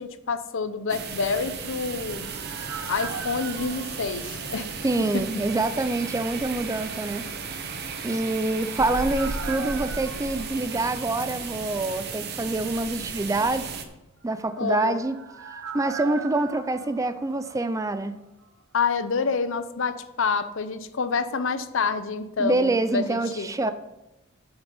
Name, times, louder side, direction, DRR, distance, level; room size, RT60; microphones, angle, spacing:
voice 1, 0.0-2.3 2.9-4.7 5.1-5.2 14.6-15.0 18.7-23.7, left 5 dB, 65° left, 0.7 m, -28 dB
sound 1, 0.9-13.8, right 5 dB, 50° right, 1.0 m, -35 dB
sound 2, 1.4-5.2 5.5-5.6 8.0-11.7 12.0-12.1 14.3-18.2 18.4-18.5, right 5 dB, 85° right, 0.9 m, -40 dB
voice 2, 4.8-7.8 8.0-13.7 14.2-15.2 15.7-18.2 22.4-23.7, right 2 dB, 15° right, 0.4 m, -26 dB
9.3 x 5.9 x 5.3 m
head